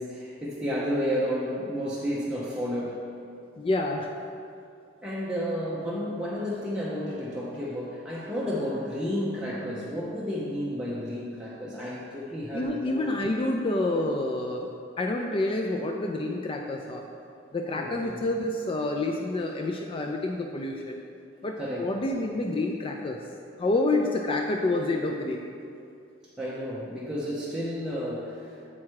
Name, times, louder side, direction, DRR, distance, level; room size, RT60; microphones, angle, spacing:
voice 1, 0.0-3.1 5.0-13.1 17.8-18.3 21.6-21.9 26.4-28.7, equal, 5° right, -8 dB, 0.7 m, -32 dB
voice 2, 3.6-4.1 12.5-14.7 15.0-17.0 17.5-21.0 21.4-23.2 23.6-25.4, left 2 dB, 30° left, 2 dB, 0.4 m, -28 dB
7.4 x 4.8 x 4.6 m, 2.5 s
head